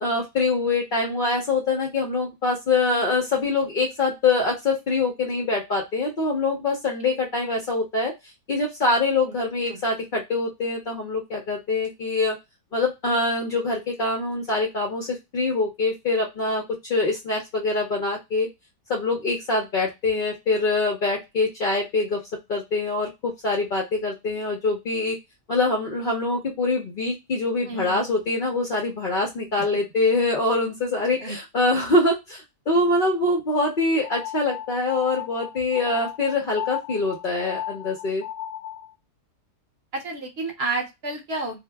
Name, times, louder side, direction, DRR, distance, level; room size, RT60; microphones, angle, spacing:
voice 1, 0.0-8.1 8.5-12.3 12.7-16.6 16.9-18.5 18.9-22.2 22.5-25.2 25.5-38.2, left 3 dB, 70° left, 0 dB, 0.5 m, -24 dB
voice 2, 27.6-28.1 29.6-29.7 31.2-31.4 39.9-41.6, right 3 dB, 55° right, 2 dB, 0.7 m, -30 dB
sound 1, 34.0-38.9, left 11 dB, 85° left, 1.2 m, -35 dB
2.7 x 2.1 x 3.3 m, 0.21 s
omnidirectional pair, 1.8 m